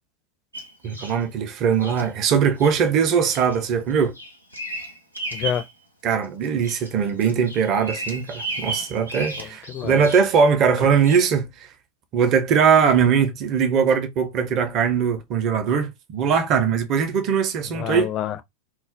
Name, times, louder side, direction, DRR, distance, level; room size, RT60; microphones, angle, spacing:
Bird vocalization bird call bird song, 0.5-1.2 1.8-2.1 2.6-2.8 3.3-3.6 3.9-5.7 6.1-6.9 7.2-10.4 11.1-11.2, right 2 dB, 85° right, 0.7 m, -34 dB
voice 1, 0.8-4.1 6.0-11.5 12.1-18.1, right 6 dB, 35° right, 0.6 m, -20 dB
voice 2, 5.3-5.6 9.4-10.1 17.7-18.4, left 10 dB, 35° left, 0.4 m, -28 dB
2.2 x 2.0 x 3.8 m
figure-of-eight pair, 90°, 0 cm